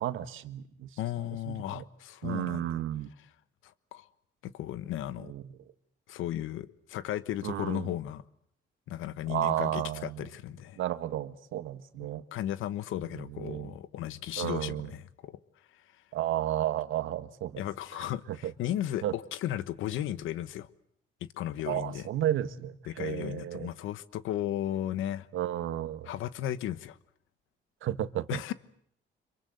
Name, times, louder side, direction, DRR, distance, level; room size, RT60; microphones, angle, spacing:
voice 1, 0.0-0.9 1.2-1.8 2.2-3.1 5.2-5.5 7.4-7.9 9.3-10.3 10.8-12.2 13.1-13.7 14.4-14.9 16.1-17.6 17.9-18.5 19.0-19.1 21.7-23.7 25.3-26.1 27.8-28.4, right 12 dB, 80° right, 1.5 m, -33 dB
voice 2, 1.0-2.7 3.9-4.1 4.4-5.3 6.1-8.2 8.9-10.8 12.3-15.4 17.6-19.0 19.4-20.7 21.4-22.1 22.9-25.3 26.1-27.0 28.3-28.5, left 12 dB, 85° left, 1.2 m, -35 dB
26.5 x 23.5 x 7.8 m
cardioid pair, 90°, 20 cm